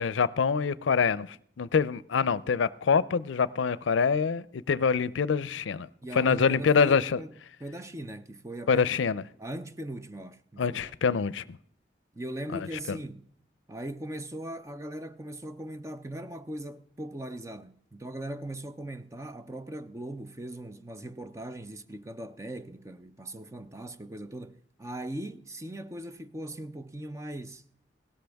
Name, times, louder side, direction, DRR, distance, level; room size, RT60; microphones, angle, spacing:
voice 1, 0.0-5.9 6.1-7.2 8.7-9.2 10.6-11.4 12.9-13.0, left 6 dB, 85° left, 0.5 m, -25 dB
voice 2, 6.0-8.9 9.4-11.2 12.1-13.3 13.7-27.6, right 1 dB, 15° right, 0.5 m, -39 dB
17.0 x 13.0 x 3.5 m
head